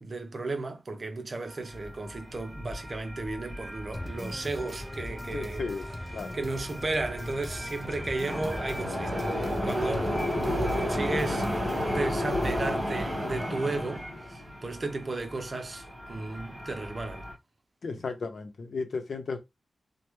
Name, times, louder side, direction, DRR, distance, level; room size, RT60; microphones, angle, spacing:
voice 1, 0.0-5.6 6.3-9.3 9.6-17.2, right 3 dB, 40° right, 0.6 m, -34 dB
sound 1, 1.5-17.3, left 1 dB, 10° right, 1.4 m, -33 dB
sound 2, 3.9-11.9, left 1 dB, 20° left, 0.6 m, -41 dB
voice 2, 5.3-5.9 6.1-6.4 17.8-19.4, left 4 dB, 70° left, 0.8 m, -34 dB
3.2 x 2.2 x 3.1 m
wide cardioid pair, 95°, 0 cm